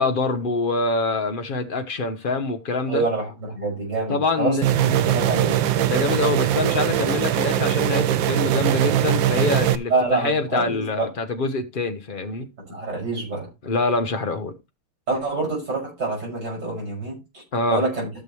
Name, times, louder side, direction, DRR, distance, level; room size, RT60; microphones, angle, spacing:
voice 1, 0.0-3.0 4.1-4.6 5.8-12.5 13.6-14.5 17.5-17.8, left 3 dB, 80° left, 0.4 m, -25 dB
voice 2, 2.9-5.6 9.9-11.1 12.7-13.5 15.1-17.4 17.7-18.1, right 3 dB, 50° right, 6.5 m, -26 dB
sound 1, 4.6-9.8, right 11 dB, 70° right, 1.3 m, -21 dB
14.0 x 6.9 x 3.1 m
omnidirectional pair, 2.4 m